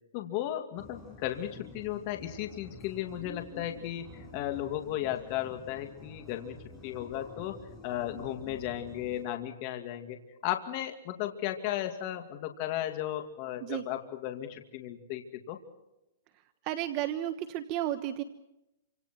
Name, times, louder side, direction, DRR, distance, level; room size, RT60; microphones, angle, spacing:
voice 1, 0.1-6.6 6.8-7.6 7.8-15.6, left 12 dB, 35° left, 5 dB, 2.5 m, -35 dB
sound 1, 0.8-9.3, left 2 dB, 10° left, 7.4 m, -49 dB
voice 2, 16.6-18.2, right 13 dB, 35° right, 9 dB, 1.2 m, -32 dB
28.5 x 26.0 x 4.6 m, 0.91 s
hypercardioid pair, 155°, 0 cm